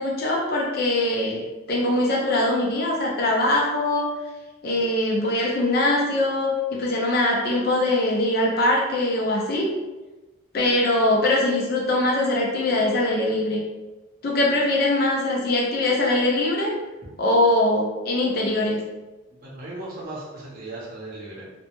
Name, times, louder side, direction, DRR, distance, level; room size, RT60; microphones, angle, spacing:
voice 1, 0.0-1.4 1.7-4.1 4.6-9.7 10.5-13.6 14.2-16.7 17.2-18.8, left 1 dB, 45° left, -2 dB, 0.4 m, -22 dB
voice 2, 19.3-21.5, right 2 dB, 45° right, -5 dB, 0.7 m, -37 dB
2.1 x 2.0 x 2.9 m, 1.1 s
head